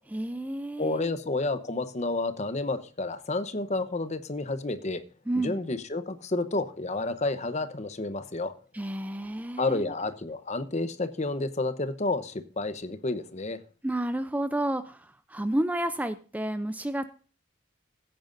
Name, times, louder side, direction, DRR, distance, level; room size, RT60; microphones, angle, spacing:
voice 1, 0.1-1.1 5.3-5.6 8.7-9.9 13.8-17.1, right 1 dB, 10° right, 0.4 m, -31 dB
voice 2, 0.8-5.0 5.4-8.5 9.6-13.6, left 2 dB, 35° left, 0.9 m, -30 dB
16.0 x 9.0 x 2.6 m
head